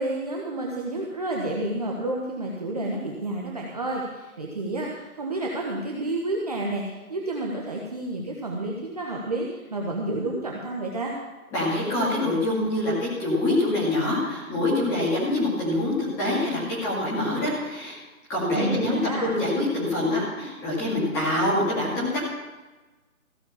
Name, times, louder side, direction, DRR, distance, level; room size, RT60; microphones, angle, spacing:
voice 1, 0.0-11.1 18.5-19.3, right 2 dB, 25° right, -2 dB, 1.1 m, -30 dB
voice 2, 11.5-18.0 18.3-22.3, left 1 dB, 5° left, -7 dB, 2.1 m, -25 dB
15.0 x 6.5 x 7.0 m, 1.2 s
figure-of-eight pair, 165°, 44 cm